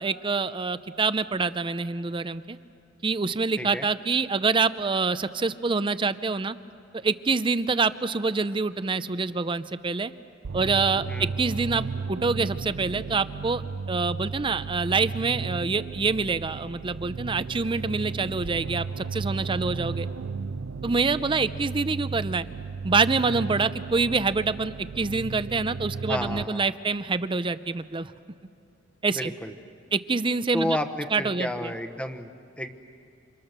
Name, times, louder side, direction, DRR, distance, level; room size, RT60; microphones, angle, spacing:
voice 1, 0.0-2.6 3.0-6.6 6.9-10.1 10.5-13.6 13.9-20.1 20.8-22.4 22.8-28.1 29.0-29.3 29.9-30.8 31.1-31.7, right 4 dB, 25° right, 13 dB, 0.5 m, -26 dB
sound 1, 10.4-26.5, right 4 dB, 90° right, 0.6 m, -34 dB
voice 2, 26.1-26.7 29.1-29.5 30.5-32.3 32.6-32.7, left 1 dB, 5° left, 8 dB, 1.1 m, -31 dB
29.0 x 26.0 x 6.7 m, 2.5 s
head